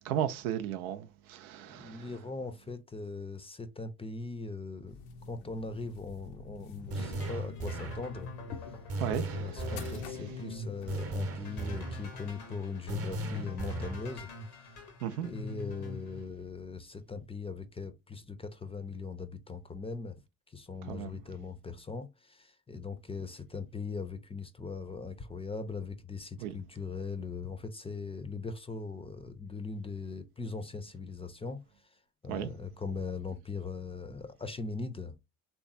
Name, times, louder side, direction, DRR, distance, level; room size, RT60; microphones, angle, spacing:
voice 1, 0.0-2.1 9.0-9.9 10.2-10.3 15.0-15.3 20.9-21.2 26.4-26.5 32.3-32.5, right 10 dB, 75° right, 0.6 m, -35 dB
voice 2, 1.7-5.0 5.3-8.3 9.1-14.3 14.5-14.7 15.1-20.2 20.5-31.6 32.2-35.2, left 4 dB, 15° left, 0.5 m, -40 dB
sound 1, 4.9-10.9, left 5 dB, 70° left, 0.6 m, -48 dB
sound 2, 6.9-16.3, left 4 dB, 90° left, 1.1 m, -45 dB
sound 3, 6.9-8.1 8.9-10.1 10.9-12.1 12.9-14.1, right 2 dB, 35° right, 0.8 m, -36 dB
3.4 x 3.0 x 2.6 m
hypercardioid pair, 55°, 44 cm